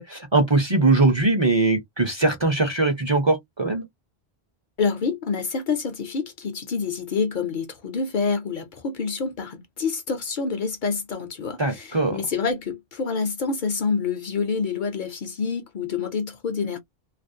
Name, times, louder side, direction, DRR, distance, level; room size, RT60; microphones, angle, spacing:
voice 1, 0.0-3.8 11.6-12.2, right 3 dB, 35° right, 0.5 m, -21 dB
voice 2, 4.8-16.8, left 5 dB, 60° left, 0.6 m, -27 dB
2.4 x 2.0 x 2.5 m
omnidirectional pair, 1.0 m